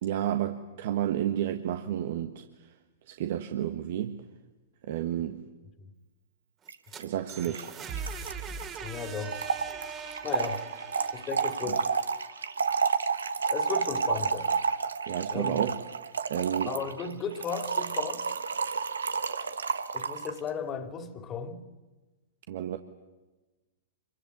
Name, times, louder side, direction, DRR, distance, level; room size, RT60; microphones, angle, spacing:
voice 1, 0.0-2.4 3.1-4.2 4.8-5.4 7.0-7.7 15.1-15.7 16.3-16.7 22.5-22.8, right 11 dB, 55° right, 1.6 m, -31 dB
sound 1, 6.6-12.5, right 6 dB, 25° right, 2.7 m, -41 dB
Trickle dribble / Fill (with liquid), 6.7-6.8 7.0-7.1 7.3-20.4, right 5 dB, 80° right, 1.3 m, -31 dB
voice 2, 8.8-9.4 10.2-10.7 11.1-11.9 13.5-14.6 15.3-15.7 16.7-18.4 19.9-21.6, left 6 dB, 25° left, 2.8 m, -36 dB
27.0 x 23.5 x 9.3 m
hypercardioid pair, 110°, 0 cm